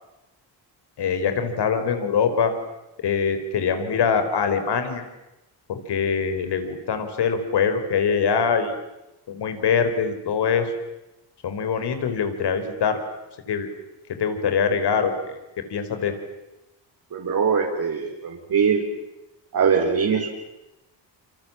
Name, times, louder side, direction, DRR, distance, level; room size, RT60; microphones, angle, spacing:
voice 1, 1.0-2.5 3.0-5.0 5.7-8.7 9.3-10.7 11.4-13.0 13.5-13.7 14.1-15.4 15.7-16.1, left 6 dB, 65° left, 8 dB, 5.0 m, -23 dB
voice 2, 17.1-18.8 19.5-20.3, right 6 dB, 50° right, -2 dB, 5.4 m, -22 dB
28.5 x 27.5 x 7.6 m, 0.96 s
cardioid pair, 100°, 44 cm